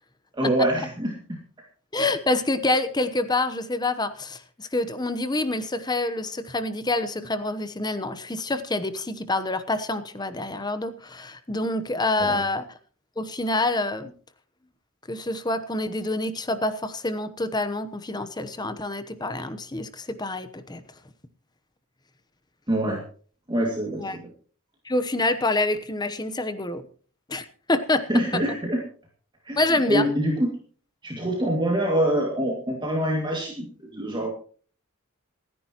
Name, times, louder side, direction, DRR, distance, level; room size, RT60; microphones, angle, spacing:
voice 1, 0.3-1.4 12.2-12.4 22.7-23.0 23.5-24.3 28.1-28.8 29.4-30.5 31.0-34.3, right 1 dB, 20° right, -1 dB, 2.3 m, -25 dB
voice 2, 1.9-12.7 13.2-14.1 15.1-20.8 23.9-24.2 24.8-26.8 27.3-28.0 29.6-30.1, left 2 dB, 20° left, 11 dB, 0.9 m, -27 dB
27.0 x 10.0 x 3.0 m, 0.43 s
head